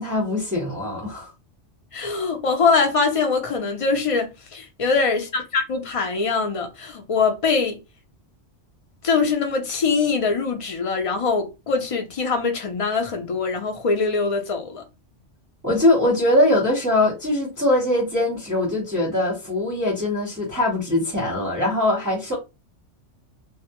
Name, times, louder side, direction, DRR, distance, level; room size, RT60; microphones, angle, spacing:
voice 1, 0.0-1.3 15.6-22.4, left 1 dB, 20° right, 0.7 m, -22 dB
voice 2, 1.9-7.8 9.0-14.8, left 4 dB, 60° left, 0.3 m, -23 dB
2.2 x 2.0 x 2.8 m
omnidirectional pair, 1.2 m